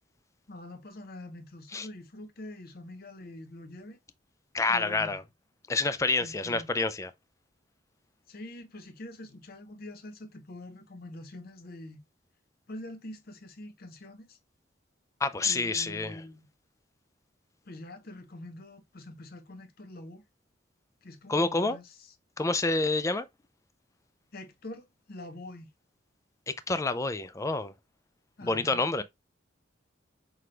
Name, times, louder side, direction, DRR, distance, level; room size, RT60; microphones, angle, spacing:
voice 1, 0.5-4.0 4.7-5.2 6.2-6.7 8.3-12.0 12.7-14.4 15.4-16.5 17.6-20.2 21.0-22.1 24.3-25.7 28.4-29.0, left 1 dB, 50° left, 0.8 m, -45 dB
voice 2, 4.5-5.2 5.7-7.1 15.2-16.2 21.3-21.8 22.4-23.3 26.7-27.7 28.4-29.0, left 3 dB, 15° left, 0.3 m, -28 dB
5.9 x 2.3 x 3.2 m
head